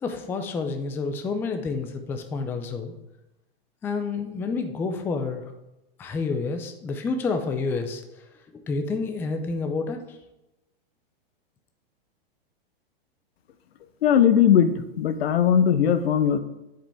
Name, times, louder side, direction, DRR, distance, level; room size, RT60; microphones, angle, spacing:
voice 1, 0.0-2.9 3.8-5.4 6.0-8.0 8.7-10.2, left 4 dB, 10° left, 6 dB, 0.3 m, -29 dB
voice 2, 14.0-16.4, left 8 dB, 80° left, 11 dB, 0.8 m, -19 dB
10.0 x 5.0 x 3.5 m, 0.95 s
hypercardioid pair, 135°, 30 cm